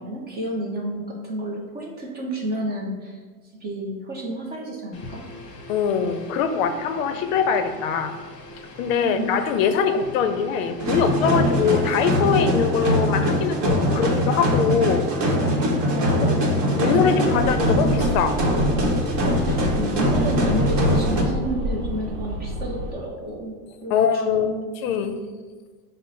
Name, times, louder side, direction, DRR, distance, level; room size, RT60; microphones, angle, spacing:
voice 1, 0.0-3.2 3.6-5.2 9.0-9.3 15.9-17.5 17.8-18.0 19.4-24.7, right 1 dB, 25° right, -1 dB, 0.4 m, -30 dB
sound 1, 4.9-12.0, left 2 dB, 30° left, 0.8 m, -42 dB
voice 2, 5.7-8.1 8.8-15.1 16.2-16.4 16.8-18.3 23.9-24.5 24.8-25.1, left 7 dB, 60° left, 8 dB, 0.5 m, -22 dB
sound 2, 10.8-21.2, equal, 45° right, 1.0 m, -22 dB
sound 3, 17.3-22.9, equal, 65° right, 0.8 m, -30 dB
5.5 x 2.0 x 3.9 m, 1.4 s
supercardioid pair, 125°, 46 cm